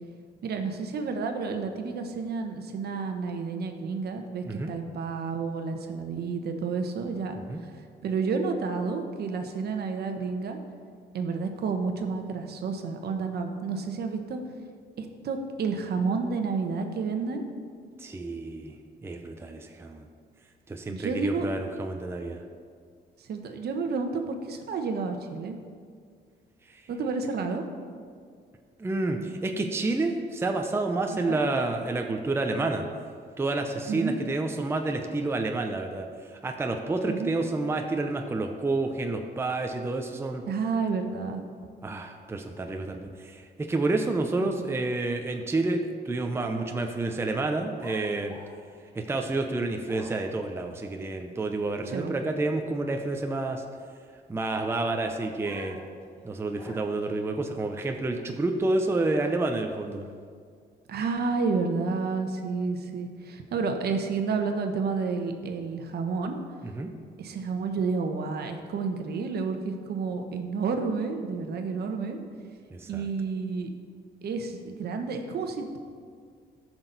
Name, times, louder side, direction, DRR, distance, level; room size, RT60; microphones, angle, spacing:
voice 1, 0.4-10.6 11.1-14.4 15.0-17.4 20.9-21.5 23.2-25.6 26.9-27.6 31.1-31.4 33.9-34.2 37.1-37.3 40.5-41.4 44.4-44.5 51.9-52.1 60.9-66.4 67.2-72.2 72.9-73.7 74.2-75.8, right 4 dB, 60° right, 5 dB, 1.0 m, -30 dB
voice 2, 18.0-18.7 19.0-20.1 20.7-22.4 26.7-26.8 28.8-32.8 33.4-40.4 41.8-48.4 49.0-53.6 54.3-55.9 56.2-60.1 66.6-66.9 72.7-73.0, right 2 dB, 15° right, 4 dB, 0.6 m, -29 dB
sound 1, 47.8-49.4 49.8-50.5 55.4-57.2, equal, 10° left, 1.9 m, -47 dB
14.5 x 6.1 x 4.0 m, 2.1 s
cardioid pair, 135°, 18 cm